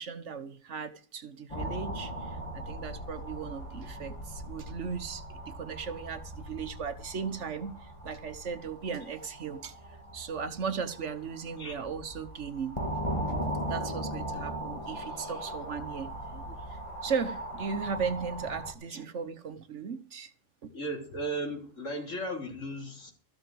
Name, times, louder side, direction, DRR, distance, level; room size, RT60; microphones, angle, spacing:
voice 1, 0.0-9.8 10.1-12.8 13.3-13.4 13.7-20.3 20.6-20.7, right 6 dB, 70° right, 1.3 m, -37 dB
sound 1, 1.5-18.7, right 1 dB, 25° left, 2.6 m, -39 dB
voice 2, 20.7-23.1, right 1 dB, 75° left, 3.9 m, -36 dB
13.5 x 7.6 x 7.8 m
omnidirectional pair, 1.3 m